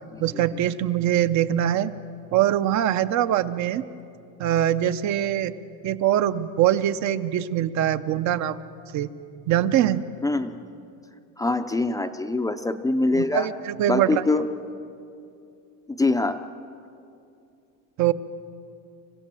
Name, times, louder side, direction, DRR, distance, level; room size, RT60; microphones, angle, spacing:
voice 1, 0.2-1.9 2.3-3.9 4.4-5.5 5.8-8.6 8.9-9.1 9.5-10.0 13.1-14.3 18.0-18.1, right 11 dB, 50° right, 12 dB, 0.7 m, -23 dB
voice 2, 10.2-10.6 11.4-13.5 13.9-14.5 15.9-16.4, left 2 dB, 10° left, 7 dB, 0.5 m, -24 dB
26.5 x 16.0 x 7.6 m, 2.5 s
cardioid pair, 155°, 36 cm